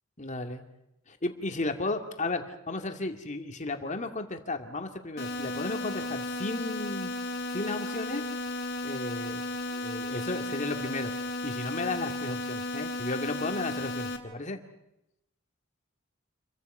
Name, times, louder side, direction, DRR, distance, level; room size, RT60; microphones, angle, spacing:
voice 1, 0.2-0.6 1.1-7.1 7.5-8.3 8.8-11.1 11.4-14.6, left 2 dB, 35° left, 5 dB, 2.3 m, -34 dB
sound 1, 5.2-14.2, left 2 dB, 55° left, 3.3 m, -34 dB
28.5 x 23.5 x 5.6 m, 0.86 s
head